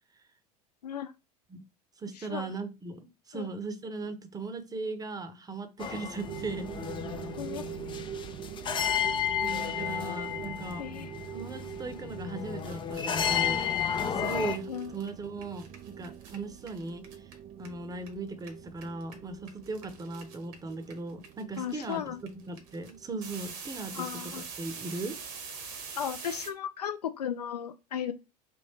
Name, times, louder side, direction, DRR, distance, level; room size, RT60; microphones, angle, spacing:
voice 1, 0.8-1.1 2.1-2.5 3.3-3.5 7.4-7.6 10.8-11.1 14.7-14.9 21.6-22.2 23.9-24.4 26.0-28.1, left 9 dB, 85° left, 0.4 m, -35 dB
voice 2, 2.0-6.7 9.4-10.9 11.3-13.7 14.0-17.3 17.6-22.0 22.5-25.2, right 3 dB, 20° right, 0.9 m, -38 dB
sound 1, 5.8-14.6, left 9 dB, 25° left, 0.5 m, -32 dB
sound 2, 6.2-23.5, right 9 dB, 35° right, 0.4 m, -44 dB
sound 3, 12.3-12.4 12.6-18.1 18.4-26.5, right 5 dB, 60° right, 1.4 m, -44 dB
3.6 x 2.5 x 4.3 m
hypercardioid pair, 80°, 20 cm